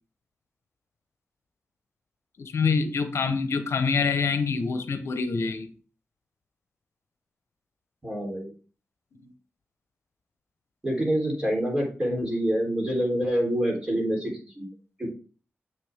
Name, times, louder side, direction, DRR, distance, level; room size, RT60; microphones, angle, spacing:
voice 1, 2.4-5.7 9.2-9.3, left 5 dB, 75° left, 9 dB, 0.9 m, -26 dB
voice 2, 8.0-8.5 10.8-14.7 15.0-15.1, equal, 20° right, 0 dB, 3.5 m, -26 dB
7.2 x 6.7 x 3.5 m, 0.37 s
wide cardioid pair, 125°, 5 cm